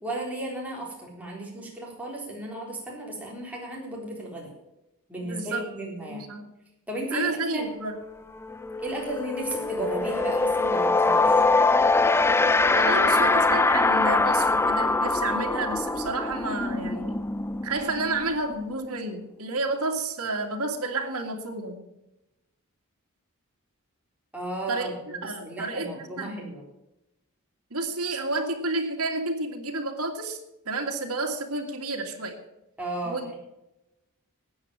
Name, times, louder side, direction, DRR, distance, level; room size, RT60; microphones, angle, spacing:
voice 1, 0.0-4.5 5.1-6.2 6.9-7.7 8.8-11.4 24.3-26.6 32.8-33.4, right 1 dB, 5° right, -3 dB, 3.8 m, -34 dB
voice 2, 5.2-5.7 6.1-6.5 7.1-8.0 12.7-17.3 17.6-21.8 24.7-26.5 27.7-30.4 30.7-32.4 33.0-33.3, right 3 dB, 75° right, 2 dB, 2.2 m, -30 dB
sound 1, 7.9-8.1 8.4-19.0, left 3 dB, 10° left, 0.4 m, -23 dB
13.0 x 8.8 x 7.3 m, 0.91 s
head